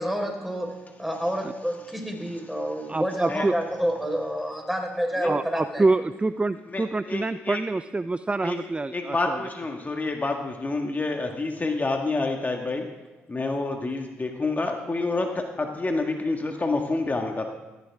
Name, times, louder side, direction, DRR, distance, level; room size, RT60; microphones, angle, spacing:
voice 1, 0.0-5.8, equal, ahead, 2 dB, 4.4 m, -29 dB
voice 2, 2.2-2.9 3.3-3.5 5.2-5.4 6.7-7.6 8.4-8.6 8.9-12.9 13.3-17.5, left 3 dB, 30° left, 3 dB, 1.7 m, -28 dB
voice 3, 2.9-3.5 5.2-9.4, right 3 dB, 20° right, 13 dB, 0.5 m, -26 dB
15.0 x 14.5 x 3.6 m, 1.1 s
hypercardioid pair, 50°, 6 cm